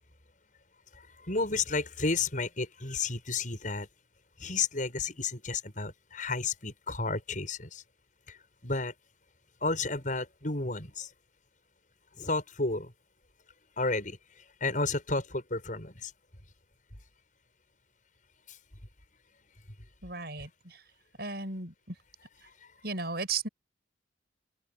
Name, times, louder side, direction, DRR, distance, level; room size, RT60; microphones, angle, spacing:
voice 1, 1.2-3.9 4.4-7.8 8.3-8.4 8.6-8.9 9.6-11.1 12.2-12.9 13.8-14.2 14.6-16.1 18.5-18.6, left 3 dB, 45° left, 7.1 m, -32 dB
voice 2, 20.0-20.7 21.2-21.7 22.8-23.5, right 4 dB, 60° right, 7.9 m, -35 dB
open air
head